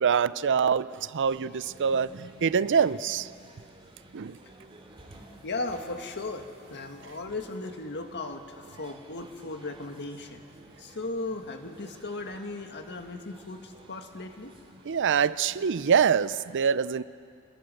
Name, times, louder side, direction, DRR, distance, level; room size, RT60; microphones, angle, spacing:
voice 1, 0.0-3.3 4.1-4.4 14.8-17.0, right 6 dB, 60° right, 17 dB, 0.5 m, -25 dB
sound 1, 1.3-16.4, right 1 dB, 25° right, 3.0 m, -53 dB
voice 2, 5.4-10.4 10.8-14.5, left 2 dB, 50° left, 5 dB, 1.8 m, -36 dB
26.0 x 21.0 x 7.8 m, 2.4 s
head